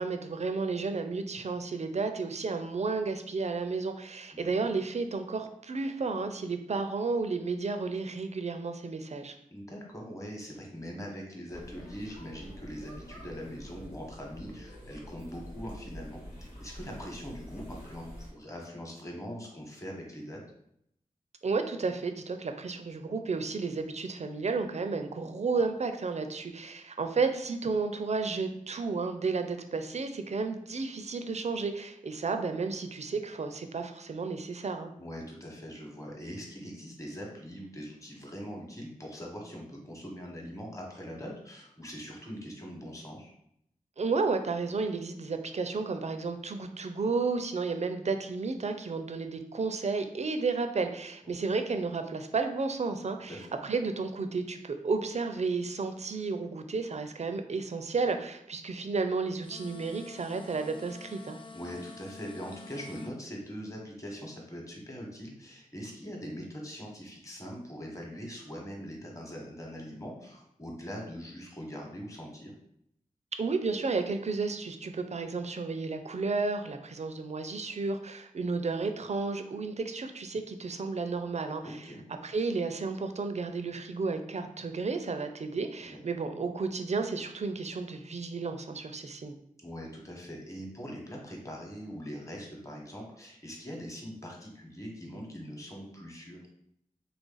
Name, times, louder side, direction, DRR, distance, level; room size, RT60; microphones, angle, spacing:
voice 1, 0.0-9.3 21.4-34.9 44.0-61.4 73.4-81.8 82.2-89.4, right 4 dB, 50° right, 7 dB, 0.4 m, -32 dB
voice 2, 9.5-20.4 35.0-43.3 51.2-51.3 53.3-53.5 61.5-72.5 81.6-82.0 85.8-86.0 89.6-96.4, equal, 20° left, 0 dB, 1.1 m, -42 dB
sound 1, 11.5-18.3, equal, 90° left, 1.4 m, -47 dB
sound 2, 59.4-63.1, left 4 dB, 35° left, 0.4 m, -48 dB
3.2 x 2.5 x 3.9 m, 0.73 s
cardioid pair, 40°, 14 cm